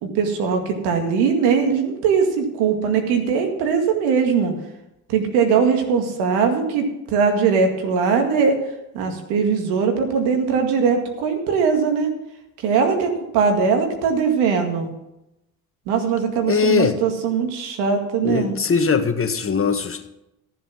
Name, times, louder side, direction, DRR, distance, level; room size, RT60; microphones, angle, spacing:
voice 1, 0.0-4.5 5.1-6.9 7.1-8.6 8.9-12.1 12.6-14.9 15.9-18.5, right 6 dB, 80° right, 4 dB, 2.1 m, -20 dB
voice 2, 16.5-17.0 18.2-20.1, left 6 dB, 35° left, 7 dB, 1.7 m, -20 dB
13.5 x 7.6 x 6.2 m, 0.90 s
hypercardioid pair, 55°, 39 cm